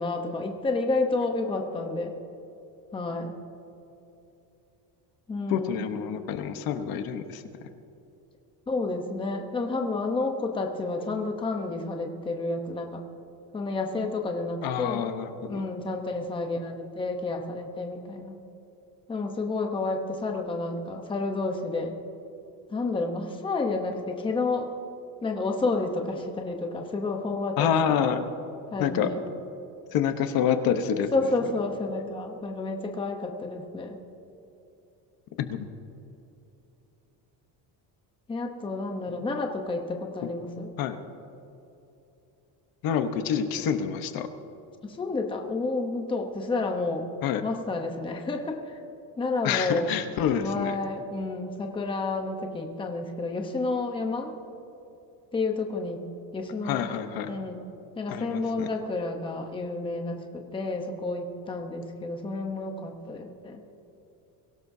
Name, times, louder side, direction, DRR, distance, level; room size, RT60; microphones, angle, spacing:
voice 1, 0.0-2.1 2.9-3.3 5.3-5.8 8.7-13.0 13.5-15.1 15.5-18.4 19.1-22.0 22.7-24.7 25.2-27.7 28.7-29.2 31.1-34.0 38.3-40.7 44.8-47.1 47.4-48.8 49.2-49.9 50.4-54.3 55.3-56.0 56.3-57.6 58.0-63.6, left 3 dB, 10° left, 3 dB, 0.8 m, -30 dB
voice 2, 5.5-7.4 14.6-15.6 27.6-28.2 28.8-29.1 29.9-31.1 35.4-35.7 40.8-41.0 42.8-44.3 47.2-47.4 49.4-50.8 56.6-57.3 58.1-58.7, left 8 dB, 60° left, 8 dB, 1.0 m, -27 dB
23.0 x 17.0 x 2.7 m, 2.9 s
cardioid pair, 175°, 41 cm